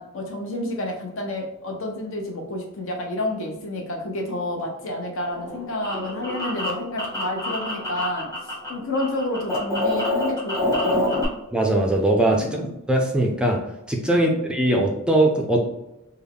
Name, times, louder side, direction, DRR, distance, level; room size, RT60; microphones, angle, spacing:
voice 1, 0.0-8.3 8.7-11.3 12.5-12.7 14.1-14.4, left 1 dB, 65° left, 1 dB, 0.8 m, -29 dB
sound 1, 5.3-8.7 8.9-11.2, left 1 dB, 15° left, 1.1 m, -26 dB
voice 2, 11.5-12.5 12.9-13.6 13.9-15.6, right 1 dB, 5° right, 0 dB, 0.4 m, -20 dB
3.4 x 2.3 x 3.5 m, 0.90 s
head